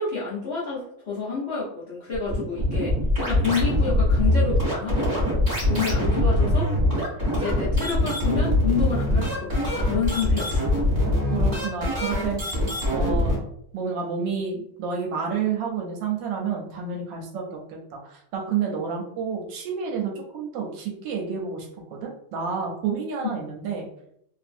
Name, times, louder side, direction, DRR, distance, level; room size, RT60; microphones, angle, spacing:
voice 1, 0.0-2.9 3.2-5.2 5.7-6.7 7.3-10.7, left 5 dB, 70° left, -8 dB, 0.6 m, -29 dB
sound 1, 2.1-13.4, left 1 dB, 25° right, 1.2 m, -23 dB
voice 2, 11.3-12.6 12.9-13.4 13.7-23.9, right 6 dB, 75° right, 0 dB, 1.2 m, -30 dB
3.0 x 2.5 x 2.5 m, 0.70 s
omnidirectional pair, 2.2 m